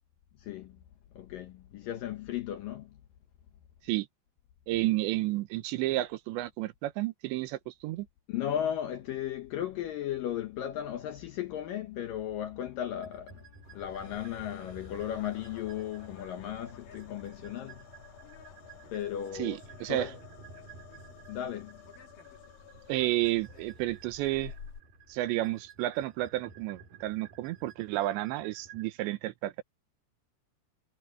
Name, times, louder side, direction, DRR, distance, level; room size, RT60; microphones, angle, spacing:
voice 1, 0.4-0.8 1.1-3.0 8.3-17.9 18.9-19.6 19.9-20.2 21.3-21.8, left 10 dB, 70° left, 2.2 m, -36 dB
voice 2, 4.7-8.1 19.4-20.1 22.9-24.5 25.1-29.6, right 16 dB, 80° right, 3.2 m, -31 dB
sound 1, 13.0-28.9, right 5 dB, 50° right, 7.3 m, -53 dB
sound 2, 13.6-24.8, left 6 dB, 50° left, 4.2 m, -54 dB
sound 3, 13.8-24.1, left 12 dB, 85° left, 5.1 m, -56 dB
omnidirectional pair, 5.1 m